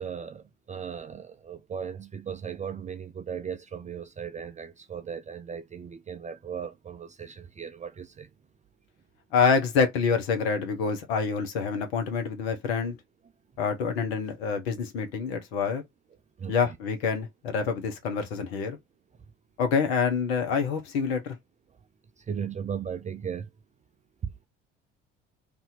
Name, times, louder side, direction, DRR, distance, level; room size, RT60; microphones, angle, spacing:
voice 1, 0.0-8.3 16.4-16.6 22.2-23.5 24.2-24.3, right 7 dB, 25° right, 0.4 m, -37 dB
voice 2, 9.3-13.0 13.6-15.8 16.5-18.8 19.6-21.4, left 5 dB, 75° left, 1.0 m, -27 dB
2.7 x 2.6 x 4.0 m
hypercardioid pair, 60°, 31 cm